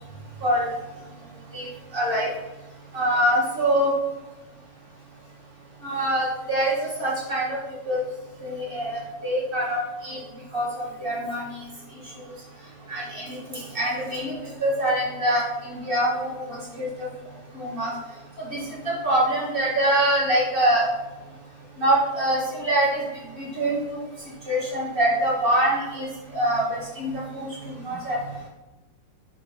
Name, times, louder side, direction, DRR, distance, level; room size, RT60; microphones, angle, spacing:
voice 1, 1.9-2.3 2.9-3.9 5.8-7.6 7.8-8.0 8.4-10.2 10.5-11.6 12.9-14.3 14.6-16.9 17.5-17.9 18.5-18.6 18.8-20.8 21.8-23.0 23.4-24.1 24.4-26.1 26.3-27.4 27.8-28.2, right 1 dB, 25° right, -7 dB, 1.2 m, -24 dB
7.1 x 3.7 x 5.1 m, 1.1 s
omnidirectional pair, 4.1 m